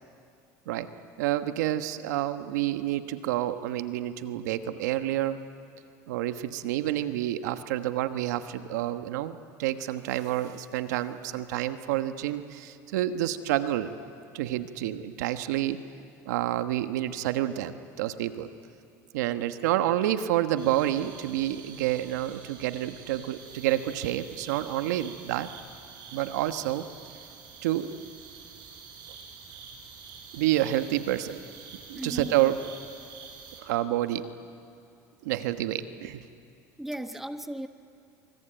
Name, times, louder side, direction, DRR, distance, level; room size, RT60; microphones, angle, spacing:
voice 1, 1.2-5.4 6.1-13.9 14.3-15.8 16.2-18.5 19.1-25.5 26.1-26.8 27.1-27.2 27.6-27.9 30.3-31.4 31.9-32.6 33.6-34.3 35.2-36.2, right 13 dB, 85° right, 9 dB, 1.3 m, -29 dB
sound 1, 20.6-33.6, right 5 dB, 55° right, 7.4 m, -47 dB
voice 2, 31.9-32.3 36.8-37.7, right 1 dB, 5° right, 8 dB, 1.4 m, -36 dB
26.5 x 25.0 x 9.0 m, 2.4 s
supercardioid pair, 105°, 9 cm